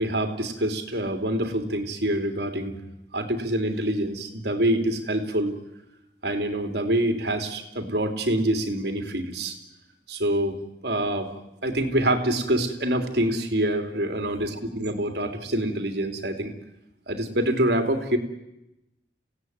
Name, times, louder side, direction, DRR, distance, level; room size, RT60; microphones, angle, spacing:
voice 1, 0.0-2.8 3.1-5.6 6.2-9.5 10.1-11.3 11.6-16.5 17.1-18.2, right 1 dB, 70° right, 5 dB, 3.1 m, -26 dB
28.5 x 17.0 x 9.5 m, 0.92 s
head